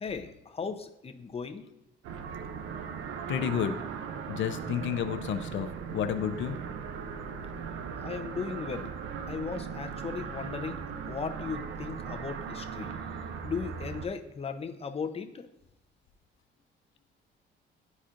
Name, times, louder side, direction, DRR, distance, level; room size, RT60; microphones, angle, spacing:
voice 1, 0.0-1.7 8.0-8.9 9.3-10.8 11.1-12.9 13.4-15.5, left 5 dB, 30° left, 5 dB, 0.7 m, -37 dB
sound 1, 2.0-14.1, right 6 dB, 85° right, 0.6 m, -38 dB
voice 2, 3.3-3.7 4.3-6.6, left 9 dB, 70° left, 9 dB, 0.6 m, -31 dB
11.5 x 4.2 x 2.5 m, 0.85 s
cardioid pair, 90°, 20 cm